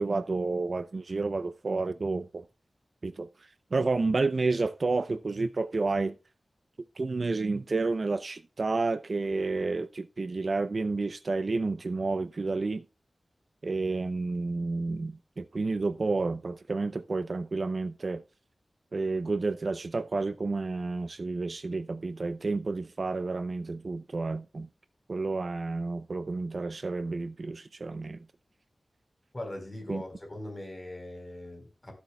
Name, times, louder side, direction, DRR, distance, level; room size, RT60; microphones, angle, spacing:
voice 1, 0.0-2.4 3.0-3.3 3.7-6.2 7.0-12.8 13.6-18.2 18.9-24.7 25.1-28.2 29.9-30.0, right 3 dB, 55° right, 0.6 m, -30 dB
voice 2, 29.3-31.9, left 1 dB, 25° left, 4.2 m, -40 dB
17.0 x 7.2 x 2.3 m
wide cardioid pair, 90°, 0 cm